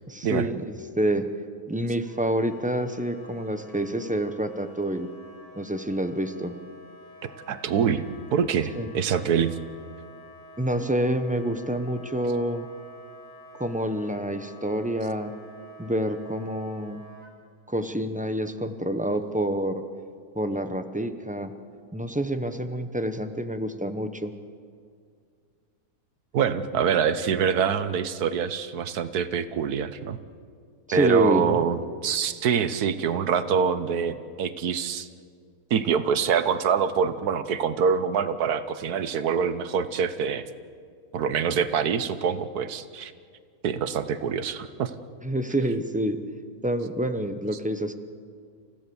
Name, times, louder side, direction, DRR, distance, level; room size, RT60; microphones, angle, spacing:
voice 1, 0.1-1.3 1.7-5.1 5.5-6.5 8.8-8.9 10.6-12.7 13.6-15.3 15.8-17.0 17.7-19.8 20.3-21.5 21.9-24.3 30.9-31.6 45.2-46.2 46.6-48.0, right 1 dB, 5° right, 8 dB, 0.7 m, -27 dB
Wind instrument woodwind instrument, 2.0-17.3, right 1 dB, 50° left, 6.2 m, -49 dB
voice 2, 7.2-8.0 8.3-9.5 26.3-30.2 30.9-35.1 35.7-40.4 41.1-43.1 43.6-44.9, right 7 dB, 85° right, 12 dB, 1.5 m, -25 dB
28.5 x 15.5 x 7.0 m, 2.1 s
omnidirectional pair, 1.6 m